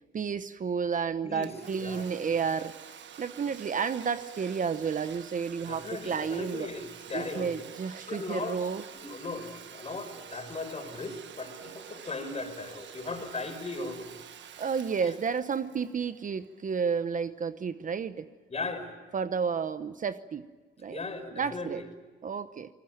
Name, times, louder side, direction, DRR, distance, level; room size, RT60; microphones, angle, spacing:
voice 1, 0.1-2.7 3.2-6.7 7.1-8.8 14.6-18.3 19.1-20.5 20.8-21.0 21.3-21.8 22.2-22.7, right 6 dB, 40° right, 12 dB, 0.9 m, -31 dB
Domestic sounds home sounds, 1.4-16.9, right 9 dB, 65° right, 1.5 m, -47 dB
voice 2, 5.6-7.6 8.1-8.6 8.9-14.2 15.0-15.1 18.5-18.9 20.9-21.9, left 3 dB, 30° left, 6 dB, 5.4 m, -37 dB
27.5 x 20.0 x 9.0 m, 1.3 s
cardioid pair, 90°, 20 cm